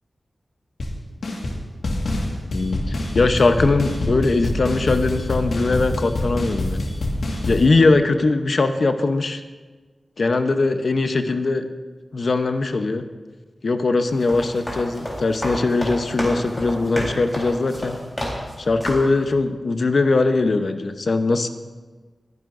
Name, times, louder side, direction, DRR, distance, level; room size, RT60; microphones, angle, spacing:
sound 1, 0.8-0.9 1.2-1.6 1.8-7.6, left 1 dB, 85° left, 1.6 m, -25 dB
voice 1, 2.5-6.9 7.4-9.4 10.2-11.7 12.1-13.0 13.6-18.0 18.6-21.5, left 3 dB, 60° left, 8 dB, 0.8 m, -20 dB
sound 2, 14.1-18.5 18.8-19.2, equal, 20° left, 3.8 m, -29 dB
22.0 x 10.5 x 2.6 m, 1.4 s
wide cardioid pair, 100°, 0 cm